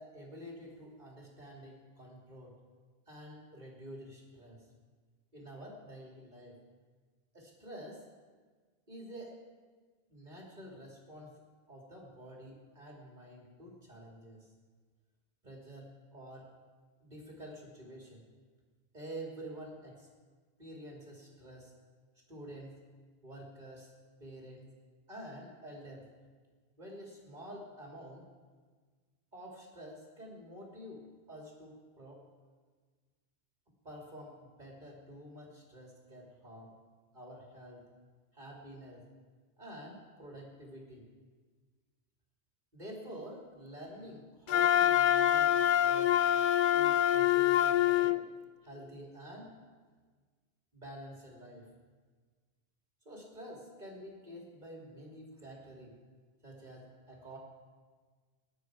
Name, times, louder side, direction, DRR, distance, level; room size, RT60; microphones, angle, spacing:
voice 1, 0.0-2.5 3.1-4.6 5.3-6.6 7.3-8.0 8.9-9.4 10.1-11.4 11.7-14.5 15.4-16.5 17.0-18.2 18.9-20.1 20.6-21.7 22.3-22.8 23.2-23.9 24.2-24.7 25.1-26.1 26.8-28.3 29.3-32.2 33.8-36.7 37.1-37.9 38.3-39.1 39.6-41.0 42.7-46.1 46.7-48.2 48.6-49.5 50.7-51.7 53.1-56.0 56.4-57.4, equal, 45° right, -2 dB, 2.5 m, -48 dB
Wind instrument woodwind instrument, 44.5-48.2, left 11 dB, 60° left, 0.6 m, -25 dB
20.0 x 10.0 x 4.7 m, 1.5 s
omnidirectional pair, 1.1 m